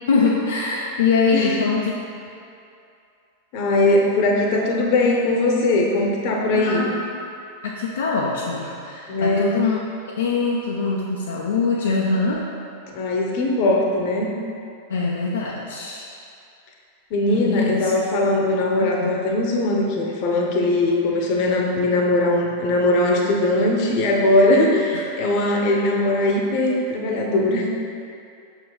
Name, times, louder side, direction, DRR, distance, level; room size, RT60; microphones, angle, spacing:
voice 1, 0.1-1.9 6.5-7.1 7.6-9.8 10.2-12.5 14.9-16.1 17.2-17.9 18.8-19.2, left 4 dB, 65° left, -3 dB, 0.5 m, -23 dB
voice 2, 1.3-1.8 3.5-6.9 9.1-9.6 12.9-14.3 17.1-27.7, left 2 dB, 45° left, 0 dB, 0.9 m, -20 dB
6.2 x 4.5 x 4.0 m, 2.6 s
figure-of-eight pair, 90°, 0 cm